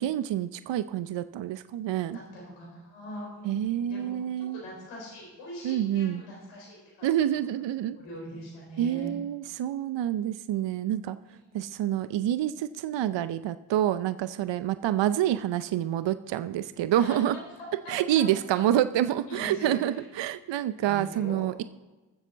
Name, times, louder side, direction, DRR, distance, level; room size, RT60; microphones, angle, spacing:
voice 1, 0.0-2.2 3.4-4.6 5.6-6.2 7.0-8.0 8.8-11.2 11.5-17.4 17.9-21.6, right 11 dB, 60° right, 13 dB, 0.7 m, -27 dB
voice 2, 2.1-7.4 8.0-9.1 11.3-11.4 11.6-11.7 16.9-18.2 19.3-20.0 20.8-21.4, equal, 90° left, -3 dB, 4.4 m, -42 dB
20.5 x 7.5 x 4.0 m, 1.1 s
supercardioid pair, 40°, 48 cm